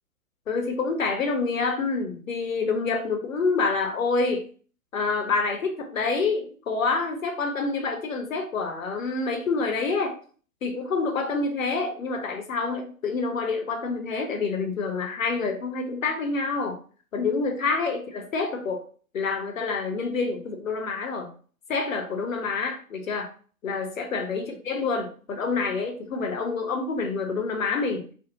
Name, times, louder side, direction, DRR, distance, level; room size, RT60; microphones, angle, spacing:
voice 1, 0.5-4.5 4.9-10.2 10.6-16.8 17.1-18.8 19.1-21.3 21.7-23.3 23.6-28.1, left 4 dB, 65° left, 4 dB, 0.8 m, -27 dB
2.5 x 2.1 x 2.9 m, 0.42 s
figure-of-eight pair, 120°, 43 cm